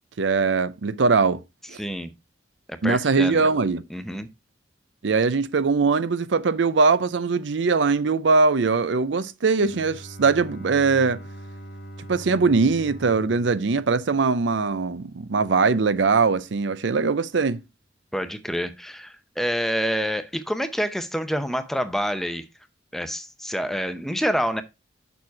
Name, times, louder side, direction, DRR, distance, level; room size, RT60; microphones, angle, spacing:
voice 1, 0.2-1.4 1.7-1.8 2.8-3.8 5.0-11.2 12.1-17.6, right 4 dB, 70° right, 0.6 m, -21 dB
voice 2, 1.8-2.1 2.7-3.4 3.9-4.3 18.1-22.4 22.9-24.6, equal, ahead, 0.7 m, -27 dB
Bowed string instrument, 9.5-14.8, right 1 dB, 60° left, 2.0 m, -42 dB
7.1 x 6.0 x 4.7 m
head